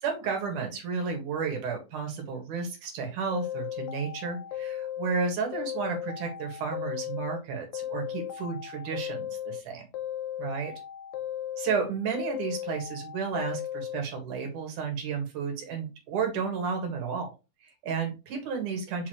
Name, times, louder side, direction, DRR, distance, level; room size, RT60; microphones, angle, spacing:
voice 1, 0.0-9.8 10.4-10.7 11.6-17.3 17.6-19.1, right 5 dB, 85° right, 3 dB, 3.3 m, -32 dB
sound 1, 3.3-5.2 5.5-7.4 7.7-9.6 9.9-11.8 12.1-14.0, left 11 dB, 75° left, 1.8 m, -36 dB
6.1 x 5.7 x 3.1 m, 0.27 s
omnidirectional pair, 3.5 m